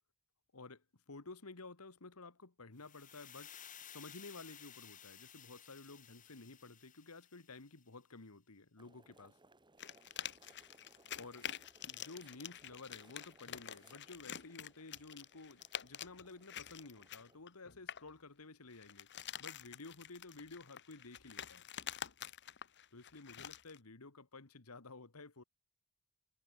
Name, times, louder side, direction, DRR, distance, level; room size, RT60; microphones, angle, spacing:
voice 1, 0.5-3.5 3.8-9.4 11.2-11.5 11.8-19.1 19.4-21.6 22.9-25.4, left 3 dB, 75° left, 1.7 m, -53 dB
sound 1, 2.8-7.8, left 9 dB, 35° left, 1.8 m, -56 dB
sound 2, 8.8-17.4, right 2 dB, 20° right, 2.7 m, -67 dB
sound 3, 9.8-18.1 18.7-23.8, left 9 dB, 55° left, 1.7 m, -48 dB
head